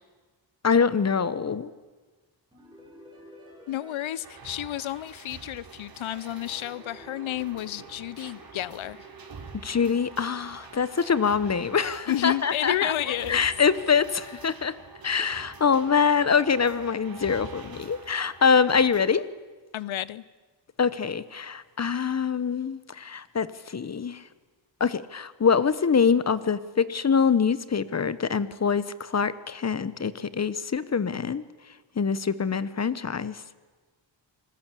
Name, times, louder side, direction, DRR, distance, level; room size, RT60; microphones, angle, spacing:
voice 1, 0.6-1.7 9.6-12.9 13.3-14.8 15.0-19.2 20.8-24.2 24.8-31.4 32.0-33.4, left 6 dB, 35° left, 16 dB, 1.0 m, -24 dB
sound 1, 2.5-5.4 6.0-8.9, left 1 dB, 10° right, 7.5 m, -52 dB
voice 2, 3.7-9.1 12.1-13.5 19.7-20.2, left 13 dB, 85° left, 20 dB, 0.8 m, -31 dB
sound 2, 4.2-19.0, right 4 dB, 50° right, 3.8 m, -46 dB
28.0 x 20.5 x 8.4 m, 1.3 s
wide cardioid pair, 130°, 46 cm